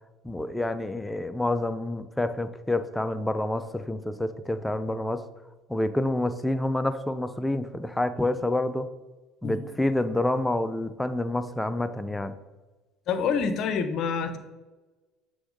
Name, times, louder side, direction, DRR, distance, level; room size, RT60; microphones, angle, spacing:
voice 1, 0.2-5.2 5.7-8.9 9.4-12.3, left 1 dB, 10° left, 10 dB, 0.5 m, -28 dB
voice 2, 13.1-14.4, left 6 dB, 55° left, 9 dB, 0.6 m, -27 dB
6.9 x 3.8 x 3.7 m, 1.2 s
hypercardioid pair, 65°, 0 cm